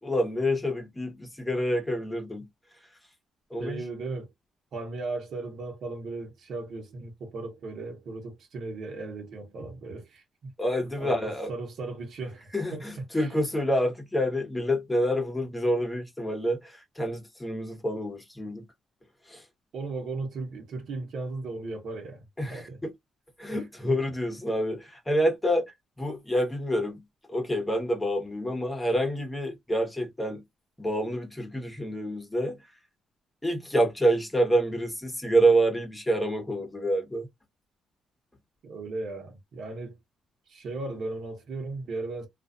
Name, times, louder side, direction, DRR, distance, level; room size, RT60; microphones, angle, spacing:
voice 1, 0.0-2.5 3.5-3.8 10.6-11.5 12.5-18.6 19.3-19.4 22.4-22.9 23.4-30.4 30.8-32.6 33.4-37.3, equal, 10° left, 1.1 m, -27 dB
voice 2, 3.6-4.3 4.7-10.5 11.0-13.0 19.7-22.8 23.5-23.6 38.6-40.0 40.5-42.3, right 3 dB, 65° right, 1.0 m, -36 dB
2.5 x 2.4 x 2.4 m
cardioid pair, 90°, 0 cm